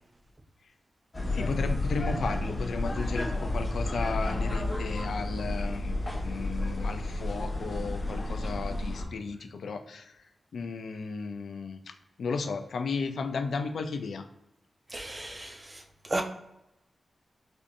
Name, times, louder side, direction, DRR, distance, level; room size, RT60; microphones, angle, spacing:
sound 1, 1.1-9.0, left 1 dB, 30° left, 1.0 m, -31 dB
voice 1, 1.3-3.3 3.5-5.9 6.2-10.0 10.5-11.8 12.2-14.2, left 4 dB, 85° left, 7 dB, 0.4 m, -34 dB
voice 2, 14.9-15.5 16.1-16.2, right 2 dB, 25° right, 4 dB, 0.4 m, -32 dB
4.3 x 2.6 x 2.5 m, 0.86 s
wide cardioid pair, 150°, 0 cm